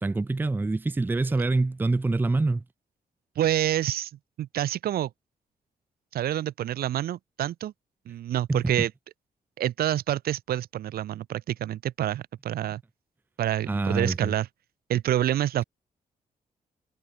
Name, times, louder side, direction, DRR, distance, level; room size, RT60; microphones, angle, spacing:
voice 1, 0.0-2.6 8.5-8.7 13.7-14.3, right 3 dB, 15° right, 0.6 m, -26 dB
voice 2, 3.4-4.1 4.4-5.1 6.1-7.7 8.1-8.9 9.6-12.8 13.4-14.5 14.9-15.6, right 12 dB, 85° right, 0.6 m, -27 dB
wide cardioid pair, 165°, 15 cm